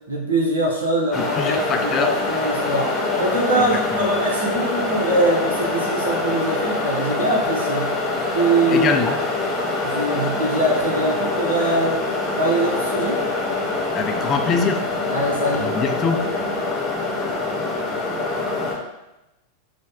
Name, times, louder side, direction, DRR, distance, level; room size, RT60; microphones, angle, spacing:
voice 1, 0.1-2.9 3.2-7.9 8.3-8.9 9.8-12.0 12.4-13.2 15.1-15.7, right 1 dB, 70° right, -3 dB, 1.0 m, -22 dB
sound 1, 1.1-18.8, left 3 dB, 15° left, 0.9 m, -24 dB
voice 2, 1.4-2.1 3.5-4.1 8.7-9.2 13.9-14.8 15.5-16.2, left 5 dB, 30° left, 5 dB, 0.4 m, -24 dB
5.1 x 2.2 x 3.6 m, 0.94 s
figure-of-eight pair, 90°, 0 cm